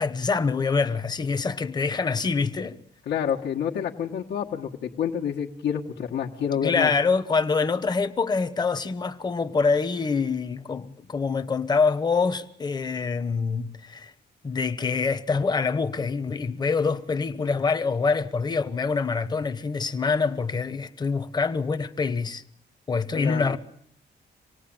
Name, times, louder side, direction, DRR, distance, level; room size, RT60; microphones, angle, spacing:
voice 1, 0.0-2.8 6.6-14.1 14.4-22.4 22.9-23.6, left 4 dB, 25° left, 1.0 m, -25 dB
voice 2, 3.1-6.9 23.1-23.6, left 8 dB, 70° left, 1.7 m, -28 dB
26.5 x 19.0 x 9.0 m
cardioid pair, 175°, 18 cm